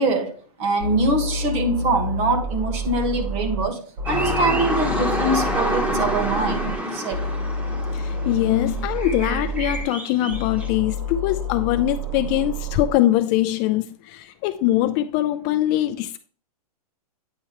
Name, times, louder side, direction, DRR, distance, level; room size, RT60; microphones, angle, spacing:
voice 1, 0.0-7.2, right 2 dB, 30° right, 1.2 m, -24 dB
sound 1, 0.8-3.7 4.0-6.8 7.1-9.8 10.3-12.9, equal, 60° right, 1.7 m, -29 dB
sound 2, 4.0-10.7, equal, 10° right, 1.0 m, -27 dB
voice 2, 7.9-16.2, left 14 dB, 30° left, 0.4 m, -22 dB
9.1 x 4.5 x 2.9 m
hypercardioid pair, 135°, 20 cm